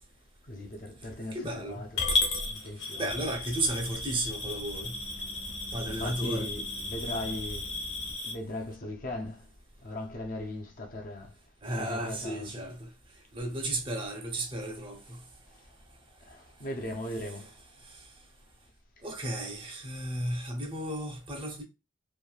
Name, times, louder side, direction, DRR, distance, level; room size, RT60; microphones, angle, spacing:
voice 1, 0.5-3.1 4.1-4.3 5.9-7.7 8.2-9.4 9.8-11.3 11.7-12.5 16.2-17.5, left 1 dB, 45° left, 0.6 m, -38 dB
voice 2, 1.3-1.8 3.0-4.9 5.7-6.5 11.6-12.9 13.3-15.2 19.0-21.6, right 1 dB, 25° right, 0.6 m, -34 dB
Coin (dropping) / Glass, 2.0-8.3, left 2 dB, 65° left, 1.1 m, -34 dB
sound 1, 3.1-8.2, equal, 75° right, 0.8 m, -45 dB
3.1 x 2.6 x 2.3 m
head